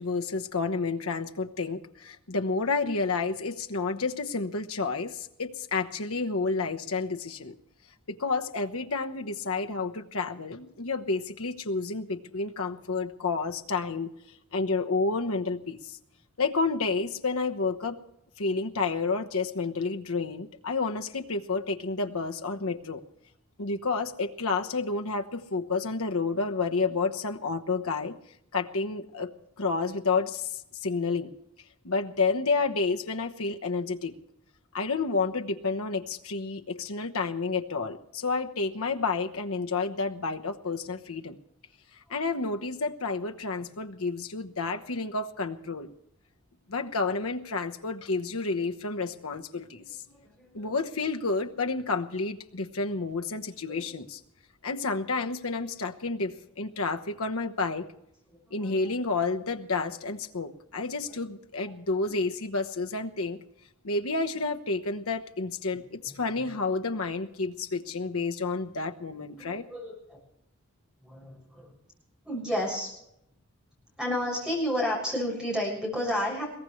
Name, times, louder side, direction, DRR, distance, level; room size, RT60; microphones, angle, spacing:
voice 1, 0.0-7.5 8.1-14.1 14.5-16.0 16.4-18.0 18.4-23.0 23.6-28.1 28.5-29.3 29.6-31.3 31.8-34.2 34.7-41.4 42.1-45.9 46.7-50.0 50.5-54.2 54.6-57.9 58.5-63.4 63.8-69.6, left 4 dB, 75° left, 5 dB, 1.1 m, -30 dB
voice 2, 50.1-50.8 53.7-53.9 58.6-58.8 66.1-66.5 69.4-70.2 71.0-71.7 72.2-72.9 74.0-76.4, equal, 5° right, -4 dB, 6.7 m, -32 dB
22.0 x 17.5 x 3.2 m, 0.77 s
head